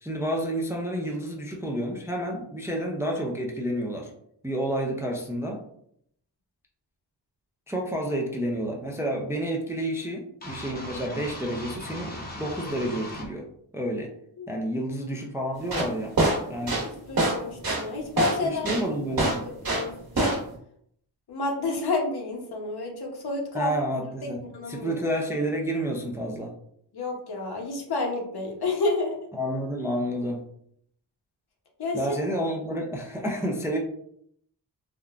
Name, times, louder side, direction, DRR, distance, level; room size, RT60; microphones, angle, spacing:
voice 1, 0.0-4.1 4.4-5.6 7.7-13.4 13.7-14.1 14.5-16.1 16.5-16.8 18.4-19.5 23.5-26.5 29.3-30.5 31.9-33.8, right 1 dB, 5° right, 0 dB, 0.3 m, -30 dB
sound 1, 10.4-13.3, left 1 dB, 20° left, 0.7 m, -38 dB
sound 2, 15.6-19.9 20.2-20.5, right 2 dB, 55° right, 1.2 m, -24 dB
voice 2, 17.1-18.7 19.2-20.3 21.3-23.7 24.5-24.9 26.9-29.2 31.8-32.0, left 3 dB, 60° left, 1 dB, 0.8 m, -30 dB
3.6 x 2.2 x 2.3 m, 0.69 s
wide cardioid pair, 100°, 43 cm